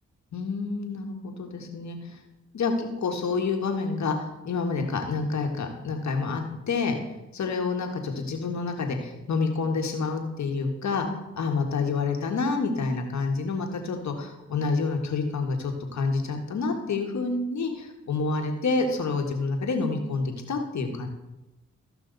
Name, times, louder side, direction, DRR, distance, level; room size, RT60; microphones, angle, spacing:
voice 1, 0.3-2.0 2.5-4.2 4.4-6.9 7.3-11.1 11.3-21.1, left 4 dB, 65° left, 3 dB, 1.6 m, -28 dB
14.0 x 5.6 x 4.0 m, 1.0 s
supercardioid pair, 40°, 30 cm